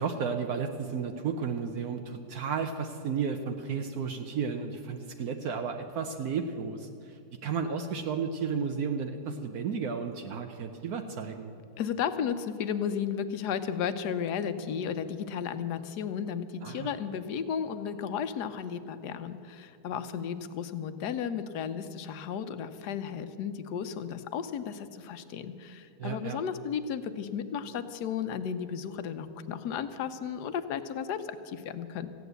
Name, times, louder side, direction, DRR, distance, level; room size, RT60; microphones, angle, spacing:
voice 1, 0.0-11.5 16.6-16.9 26.0-26.4, right 6 dB, 70° right, 5 dB, 1.2 m, -33 dB
voice 2, 11.8-32.1, left 7 dB, 85° left, 11 dB, 1.3 m, -34 dB
15.0 x 9.4 x 8.0 m, 2.6 s
omnidirectional pair, 1.7 m